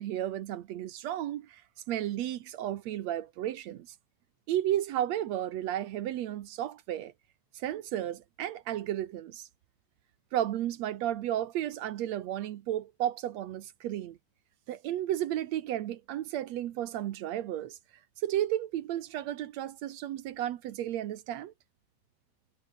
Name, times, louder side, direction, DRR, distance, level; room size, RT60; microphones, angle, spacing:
voice 1, 0.0-1.6 1.9-3.9 4.5-7.1 7.5-9.5 10.3-14.2 14.7-17.8 18.2-21.5, right 12 dB, 65° right, 2.0 m, -33 dB
omnidirectional pair, 3.6 m